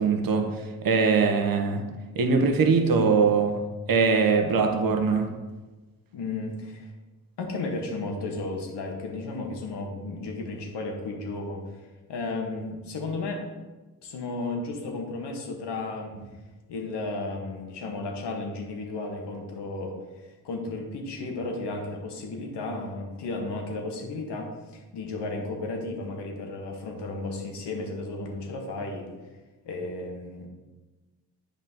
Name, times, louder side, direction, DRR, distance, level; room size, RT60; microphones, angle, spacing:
voice 1, 0.0-1.8 2.1-3.6 3.9-5.3, right 5 dB, 50° right, 5 dB, 1.3 m, -22 dB
voice 2, 6.1-6.9 7.4-13.4 14.0-16.1 16.7-19.9 20.2-29.1 29.6-30.5, left 2 dB, 65° left, 1 dB, 1.7 m, -34 dB
8.6 x 5.1 x 3.8 m, 1.2 s
hypercardioid pair, 45°, 45 cm